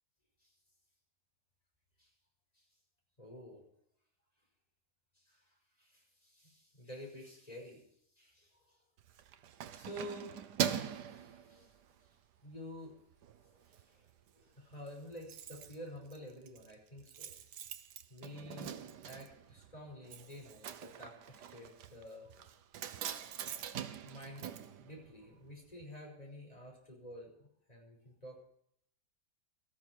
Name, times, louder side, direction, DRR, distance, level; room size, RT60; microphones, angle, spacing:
voice 1, 3.2-3.6 5.1-7.8 8.2-8.8 9.7-10.4 10.8-11.7 12.4-12.9 13.5-13.6 13.9-14.0 14.3-17.3 18.1-18.8 19.0-22.4 24.0-24.5 24.8-28.4, left 1 dB, 20° left, -1 dB, 5.2 m, -50 dB
Keys jangling, 9.0-12.1 12.5-12.8 13.1-13.8 14.1-14.2 14.4-14.5 14.7-25.5 25.8-25.9, right 9 dB, 75° right, 1.4 m, -43 dB
18.5 x 13.5 x 4.6 m, 0.72 s
omnidirectional pair, 1.9 m